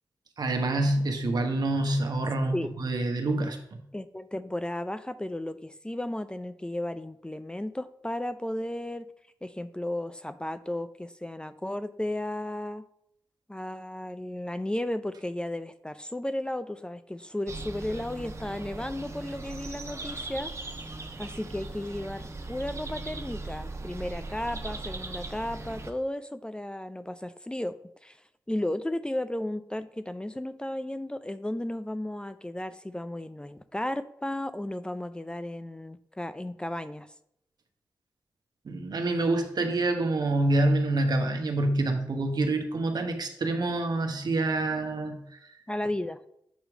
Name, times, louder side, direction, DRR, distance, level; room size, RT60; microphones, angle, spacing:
voice 1, 0.4-3.8 38.6-45.2, right 2 dB, 65° right, 5 dB, 1.2 m, -27 dB
voice 2, 3.9-9.1 9.4-12.8 13.5-20.5 21.2-27.8 28.0-28.2 28.5-37.1 45.7-46.2, left 1 dB, 10° left, 12 dB, 0.5 m, -34 dB
sound 1, 17.5-25.9, right 2 dB, 40° right, 1.1 m, -39 dB
8.2 x 3.1 x 6.1 m, 0.75 s
cardioid pair, 45°, 8 cm